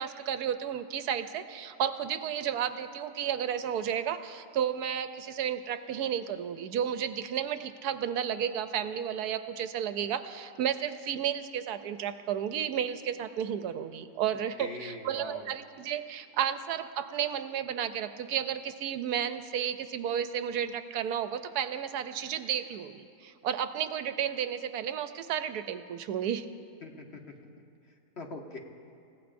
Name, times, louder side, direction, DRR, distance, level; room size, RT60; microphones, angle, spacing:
voice 1, 0.0-26.5, right 9 dB, 80° right, 10 dB, 1.1 m, -32 dB
voice 2, 14.6-15.5 26.8-27.2 28.2-28.6, left 3 dB, 45° left, 1 dB, 1.3 m, -42 dB
28.5 x 16.0 x 2.6 m, 2.5 s
omnidirectional pair, 1.7 m